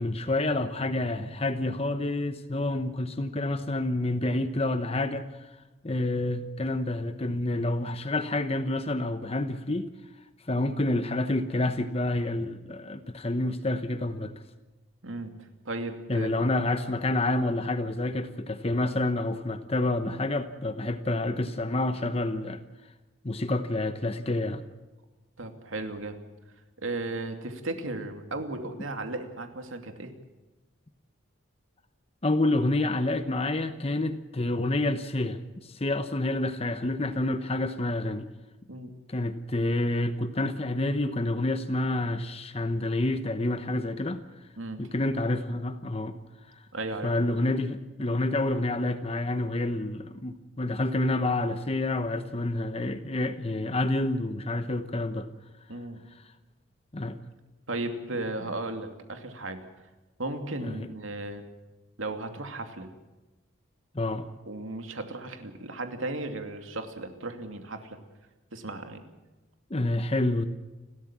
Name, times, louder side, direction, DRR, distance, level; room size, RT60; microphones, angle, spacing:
voice 1, 0.0-5.5 5.8-9.9 10.5-14.3 16.1-22.6 23.2-24.6 32.2-38.3 39.1-44.2 44.8-46.2 46.6-46.7 47.0-55.3 56.1-56.2 56.9-57.2 60.6-60.9 63.9-64.3 69.7-70.5, left 2 dB, 30° left, 9 dB, 0.9 m, -28 dB
voice 2, 15.0-15.3 15.7-16.3 25.4-26.2 26.8-30.1 38.7-38.9 44.6-44.8 46.7-47.1 55.7-56.0 57.7-59.6 60.2-61.4 62.0-62.9 64.5-68.0 68.5-69.0, right 2 dB, 75° right, 6 dB, 2.6 m, -35 dB
30.0 x 13.0 x 7.4 m, 1.1 s
head